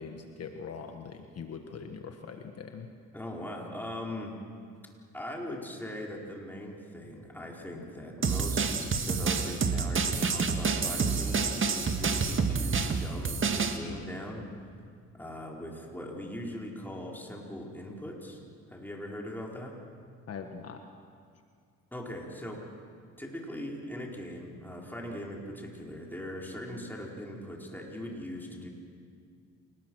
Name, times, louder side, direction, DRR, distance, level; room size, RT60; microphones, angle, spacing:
voice 1, 0.0-2.9 20.3-20.8, left 5 dB, 55° left, 5 dB, 1.5 m, -42 dB
voice 2, 3.1-4.4 5.1-14.4 15.1-18.4 18.7-19.7 21.9-22.7 23.2-28.7, left 1 dB, 5° left, -1 dB, 4.4 m, -40 dB
sound 1, 8.2-13.8, right 5 dB, 40° right, 1.9 m, -28 dB
28.5 x 19.5 x 6.3 m, 2.2 s
cardioid pair, 90°, 30 cm